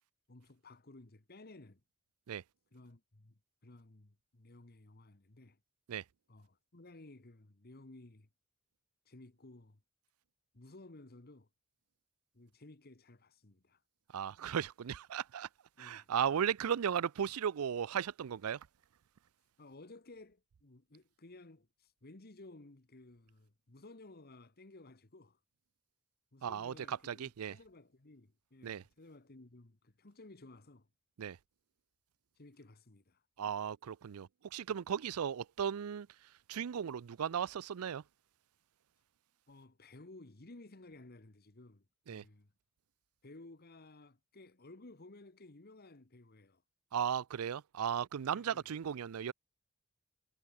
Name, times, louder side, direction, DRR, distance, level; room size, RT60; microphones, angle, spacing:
voice 1, 0.3-1.8 2.7-5.6 6.3-8.3 9.1-9.8 10.5-11.5 12.3-13.8 15.8-16.1 19.6-25.4 26.3-30.9 32.4-33.2 39.5-42.5 43.2-46.6 48.3-48.6, left 2 dB, 45° left, 1.4 m, -56 dB
voice 2, 14.1-15.5 15.8-18.7 26.4-27.6 28.6-28.8 31.2-31.4 33.4-36.1 36.5-38.0 42.1-42.2 46.9-49.3, right 8 dB, 80° right, 0.4 m, -36 dB
head